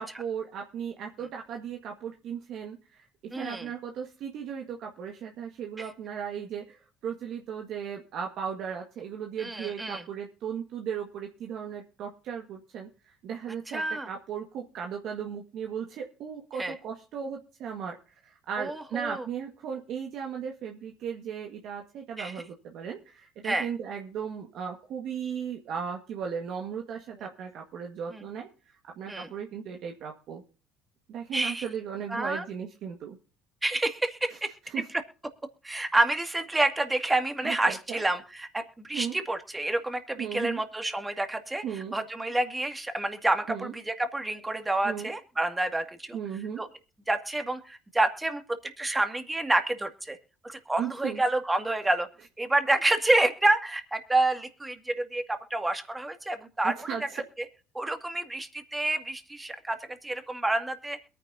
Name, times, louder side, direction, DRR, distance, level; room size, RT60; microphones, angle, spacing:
voice 1, 0.0-30.4 31.1-33.2 34.3-34.4 34.6-34.8 37.4-38.0 38.9-39.2 40.2-40.6 41.6-41.9 43.5-43.7 44.8-45.1 46.1-46.6 50.8-51.2 56.6-57.2, right 7 dB, 65° right, 2 dB, 1.8 m, -36 dB
voice 2, 3.3-3.7 5.8-5.9 9.4-10.0 13.7-14.1 16.6-16.7 18.6-19.2 22.2-22.3 23.4-23.7 28.1-28.2 29.1-29.3 31.3-31.6 32.1-32.4 33.6-34.5 35.6-41.6 41.9-46.2 46.6-46.7 47.1-50.2 50.4-52.1 52.4-56.9 57.7-59.8 60.0-61.0, right 2 dB, 15° right, 7 dB, 2.2 m, -28 dB
22.5 x 9.7 x 2.8 m, 0.37 s
supercardioid pair, 80°, 0 cm